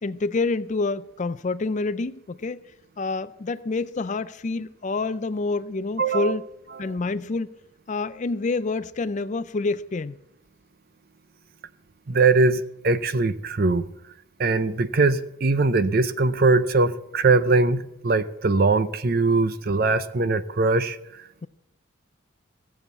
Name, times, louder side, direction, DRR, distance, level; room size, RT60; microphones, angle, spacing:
voice 1, 0.0-2.6 3.0-6.4 6.8-7.5 7.9-10.2, left 3 dB, 35° left, 0.4 m, -27 dB
voice 2, 6.0-6.4 6.9-7.0 12.1-13.9 14.4-21.0, right 3 dB, 45° right, 0.6 m, -21 dB
16.0 x 7.1 x 8.1 m
head